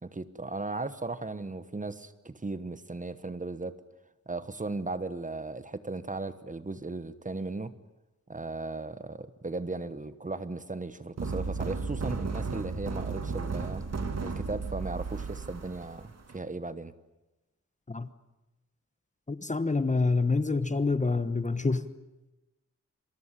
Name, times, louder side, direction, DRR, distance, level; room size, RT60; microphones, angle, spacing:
voice 1, 0.0-3.7 4.3-7.7 8.3-13.8 14.2-16.9, right 3 dB, 25° right, 1.2 m, -36 dB
sound 1, 11.2-16.4, right 4 dB, 60° right, 2.6 m, -34 dB
voice 2, 19.3-21.9, left 3 dB, 25° left, 1.1 m, -27 dB
26.5 x 21.0 x 9.9 m
wide cardioid pair, 135°, 29 cm